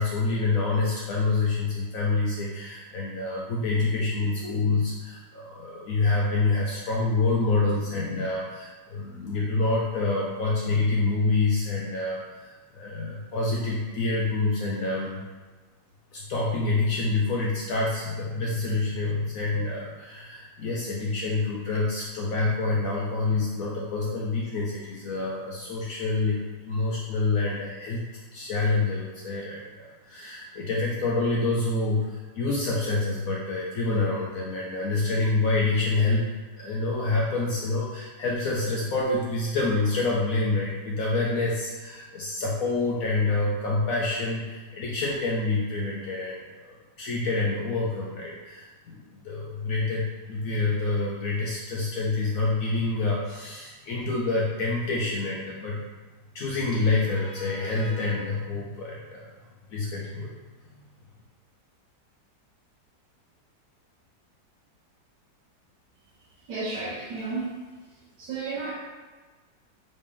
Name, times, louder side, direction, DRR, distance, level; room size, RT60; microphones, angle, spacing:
voice 1, 0.0-15.2 16.1-26.4 26.6-28.0 28.3-29.6 30.0-55.8 56.3-59.3 59.7-60.3, left 3 dB, 70° left, -4 dB, 0.8 m, -27 dB
voice 2, 66.5-67.5 68.2-68.7, right 3 dB, 75° right, -6 dB, 1.3 m, -32 dB
3.9 x 3.2 x 3.6 m, 1.3 s
omnidirectional pair, 1.9 m